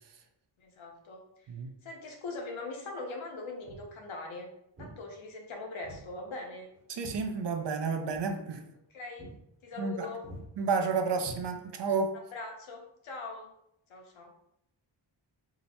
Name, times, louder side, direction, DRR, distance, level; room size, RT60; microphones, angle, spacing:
voice 1, 0.6-1.2 1.8-4.5 4.8-6.7 8.9-9.3 9.6-10.2 12.3-13.5 13.9-14.3, left 3 dB, 80° left, 1 dB, 0.8 m, -41 dB
Walk footsteps, 3.6-3.9 4.8-5.0 5.8-6.1 6.4-7.8 8.1-8.3 8.7-8.9 9.2-9.4 9.7-10.0 10.2-10.5 11.2-11.9, right 1 dB, 30° right, 1.0 m, -47 dB
voice 2, 6.9-8.6 9.8-10.1 10.6-12.1, right 5 dB, 60° right, 5 dB, 0.5 m, -31 dB
2.8 x 2.1 x 4.1 m, 0.78 s
wide cardioid pair, 125°, 47 cm